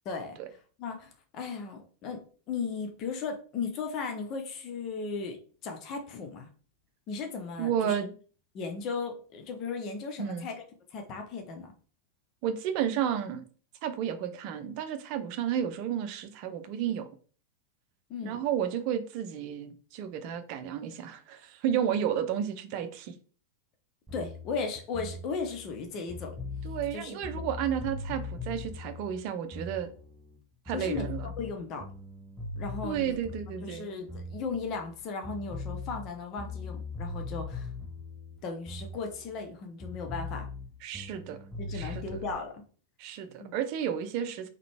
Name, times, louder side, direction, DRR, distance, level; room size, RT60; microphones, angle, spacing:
voice 1, 0.0-0.4 0.8-5.4 5.6-6.5 7.1-8.0 8.5-10.6 10.9-11.7 18.1-18.4 24.1-26.3 26.9-27.4 30.7-31.0 31.4-31.9 32.6-33.2 33.6-37.7 38.4-40.5 41.6-42.6 43.4-43.5, left 4 dB, 35° left, 0.9 m, -36 dB
voice 2, 7.6-8.1 10.2-10.5 12.4-13.4 13.8-17.1 18.2-23.1 26.6-29.9 30.7-31.3 32.8-33.9 40.8-41.4 41.7-42.0 43.0-44.5, right 9 dB, 45° right, 0.6 m, -32 dB
sound 1, 24.1-30.4 30.7-35.0 35.2-39.5 39.8-42.4, left 3 dB, 5° right, 0.9 m, -40 dB
3.9 x 3.2 x 3.4 m
figure-of-eight pair, 90°, 0 cm